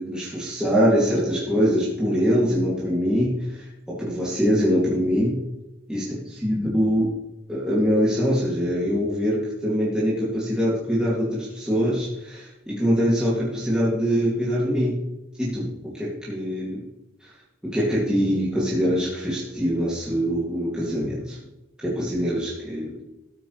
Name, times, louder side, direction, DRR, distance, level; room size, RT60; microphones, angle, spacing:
voice 1, 0.0-5.4 5.9-6.0 6.4-7.1 7.5-14.9 15.4-16.8 17.2-17.3 17.7-21.4 21.8-23.0, equal, 5° right, -7 dB, 2.2 m, -23 dB
13.0 x 9.2 x 3.1 m, 0.90 s
head